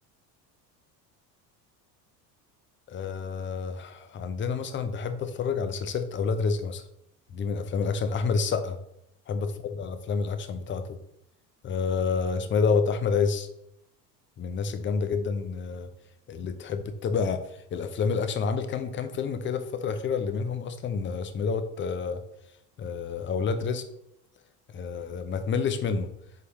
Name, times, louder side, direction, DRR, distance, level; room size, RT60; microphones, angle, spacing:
voice 1, 2.9-6.8 7.3-8.8 9.3-11.0 11.6-13.5 14.4-15.9 16.3-17.4 17.7-22.2 22.8-23.8 24.7-26.1, left 5 dB, 25° left, 9 dB, 0.7 m, -29 dB
7.8 x 4.8 x 3.1 m, 0.77 s
figure-of-eight pair, 65°, 49 cm